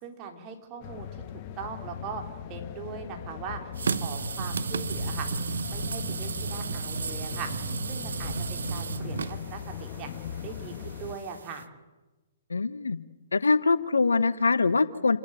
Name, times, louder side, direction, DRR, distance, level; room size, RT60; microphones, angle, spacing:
voice 1, 0.0-3.6 4.0-5.3 5.7-7.5 7.9-10.1 10.4-11.6, right 6 dB, 30° right, 3 dB, 3.8 m, -40 dB
sound 1, 0.8-11.2, left 9 dB, 40° left, 1.4 m, -39 dB
sound 2, 3.8-11.6, right 5 dB, 75° right, 0.8 m, -34 dB
voice 2, 12.5-13.0 13.3-15.2, left 4 dB, 80° left, 16 dB, 1.0 m, -23 dB
28.0 x 11.5 x 9.1 m, 1.2 s
figure-of-eight pair, 125°, 0 cm